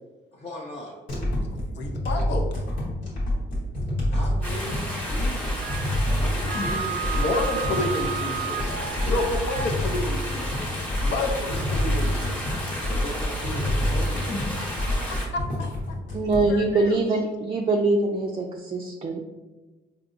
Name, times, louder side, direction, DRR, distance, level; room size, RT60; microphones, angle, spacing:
voice 1, 0.3-1.0 4.1-5.8 6.1-7.9 9.0-9.3 11.0-11.5 12.9-14.6, left 1 dB, 35° left, -4 dB, 0.6 m, -38 dB
sound 1, 1.1-16.5, left 1 dB, 85° left, 1.4 m, -27 dB
voice 2, 1.7-2.5 7.2-10.7 11.0-12.7 14.8-15.7 16.5-17.0, left 2 dB, 70° left, 2 dB, 0.6 m, -30 dB
sound 2, 4.4-15.3, equal, 5° left, 0.9 m, -34 dB
Wind instrument woodwind instrument, 5.6-9.7, right 8 dB, 80° right, 0.5 m, -33 dB
voice 3, 16.1-19.2, right 2 dB, 30° right, 1 dB, 0.4 m, -23 dB
4.6 x 2.8 x 2.6 m, 1.2 s
cardioid pair, 100°, 19 cm